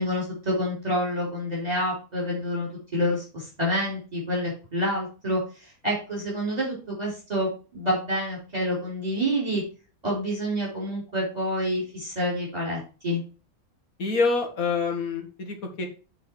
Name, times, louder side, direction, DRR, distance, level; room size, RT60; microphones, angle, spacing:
voice 1, 0.0-9.6 10.0-13.2, equal, 25° right, -4 dB, 4.4 m, -28 dB
voice 2, 14.0-15.9, left 4 dB, 75° left, 4 dB, 2.1 m, -26 dB
8.3 x 4.7 x 4.9 m, 0.35 s
omnidirectional pair, 1.5 m